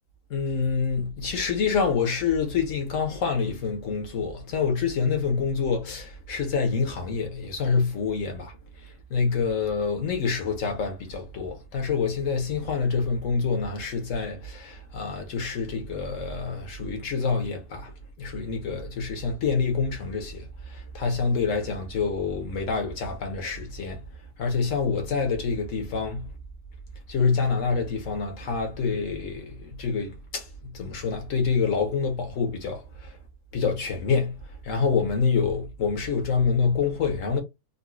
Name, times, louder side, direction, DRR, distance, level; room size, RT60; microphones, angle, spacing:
voice 1, 0.3-8.5 8.8-24.0 24.4-26.3 27.1-33.2 33.5-34.3 34.6-37.4, left 5 dB, 55° left, 1.3 m, -27 dB
4.0 x 2.3 x 2.3 m
omnidirectional pair, 1.7 m